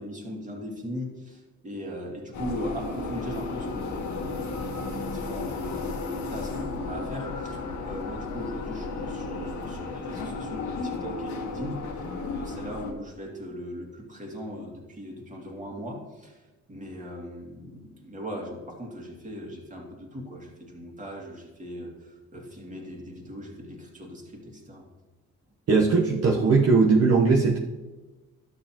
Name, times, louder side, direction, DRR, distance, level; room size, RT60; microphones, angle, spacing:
voice 1, 0.0-5.9 6.3-11.8 12.3-16.4 16.7-24.9, equal, 25° right, -1 dB, 2.3 m, -39 dB
sound 1, 2.3-12.9, left 3 dB, 65° left, 1.5 m, -34 dB
voice 2, 25.7-27.6, right 4 dB, 55° right, -2 dB, 1.1 m, -19 dB
12.0 x 6.9 x 3.0 m, 1.2 s
cardioid pair, 90°, 30 cm